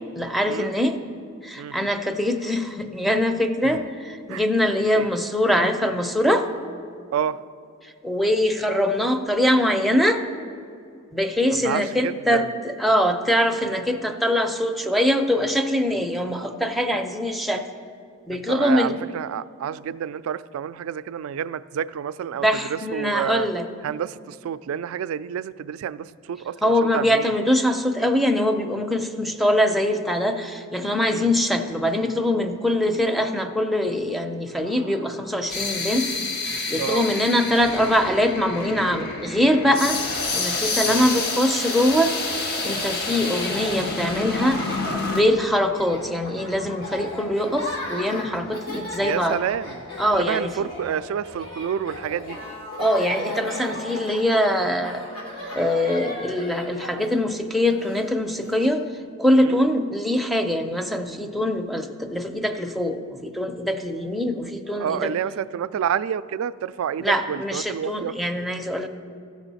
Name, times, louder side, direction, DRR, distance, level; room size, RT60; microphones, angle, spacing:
voice 1, 0.2-1.0 1.4-6.5 8.0-10.2 11.1-12.4 12.8-17.6 18.3-19.0 22.4-23.6 26.6-36.1 36.4-40.0 40.3-49.4 50.0-50.5 52.8-55.0 55.5-58.9 59.2-65.1 67.0-68.9, left 1 dB, ahead, 3 dB, 0.5 m, -23 dB
voice 2, 11.6-12.6 18.3-23.5 23.8-27.3 31.1-31.3 36.8-37.1 40.9-41.1 43.1-43.2 49.0-49.8 50.2-52.4 59.4-59.6 64.7-68.1, right 8 dB, 80° right, 15 dB, 0.3 m, -29 dB
sound 1, 34.6-45.2, left 3 dB, 50° left, 1.1 m, -29 dB
Laughter, 41.9-58.7, left 1 dB, 90° left, 2.7 m, -36 dB
15.5 x 6.3 x 4.1 m, 2.5 s
head